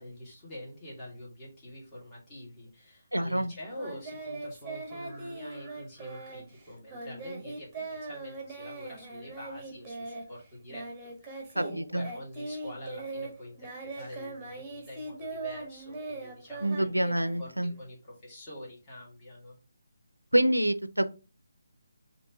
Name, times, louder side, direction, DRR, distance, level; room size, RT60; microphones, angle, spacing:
voice 1, 0.0-19.6, equal, 20° left, -5 dB, 1.9 m, -45 dB
voice 2, 3.1-3.5 11.6-11.7 11.9-12.0 16.6-17.7 20.3-21.1, right 1 dB, 90° right, 12 dB, 0.5 m, -26 dB
Singing, 3.8-11.7 12.0-17.8, right 3 dB, 10° right, 1.2 m, -40 dB
5.3 x 2.9 x 3.4 m, 0.32 s
figure-of-eight pair, 150°, 0 cm